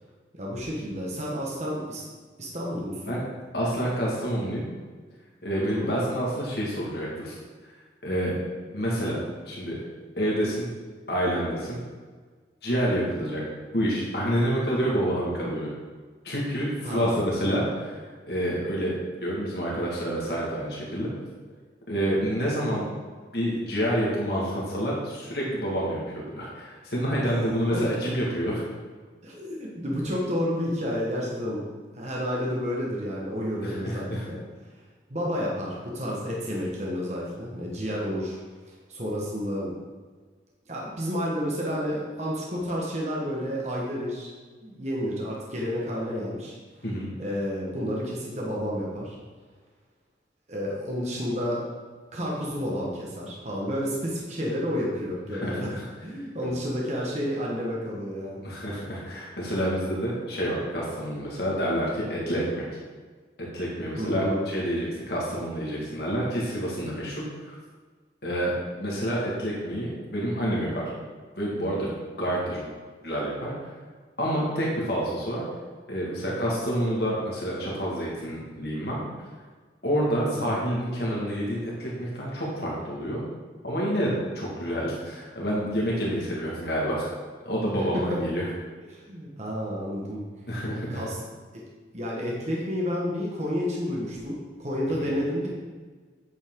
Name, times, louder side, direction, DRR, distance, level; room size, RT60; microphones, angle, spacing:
voice 1, 0.3-2.0 2.4-3.2 5.6-5.9 16.8-17.3 27.2-27.4 27.7-27.8 29.2-31.6 31.9-34.4 35.1-38.4 38.7-39.7 40.7-44.3 44.6-46.5 47.2-49.2 50.5-51.7 52.1-55.7 56.0-58.4 63.9-64.4 80.3-80.6 87.7-88.2 88.9-90.2 90.9-91.2 91.5-91.6 91.9-95.5, equal, 40° right, -4 dB, 1.4 m, -30 dB
voice 2, 3.5-4.7 5.4-7.4 8.0-8.3 8.7-9.8 10.2-10.7 11.1-11.8 12.6-13.4 13.7-15.7 16.2-18.0 18.3-18.9 19.2-21.1 21.9-22.8 23.3-28.6 33.6-34.2 46.8-47.1 55.3-55.8 56.4-56.5 58.4-62.6 63.4-67.5 68.2-68.5 68.8-70.8 71.4-71.9 72.2-72.7 73.0-73.5 74.2-75.4 75.9-79.1 79.8-83.3 83.6-87.1 87.5-88.5 90.5-91.0 95.0-95.1, equal, 60° left, -4 dB, 1.9 m, -28 dB
8.8 x 7.4 x 3.8 m, 1.5 s
head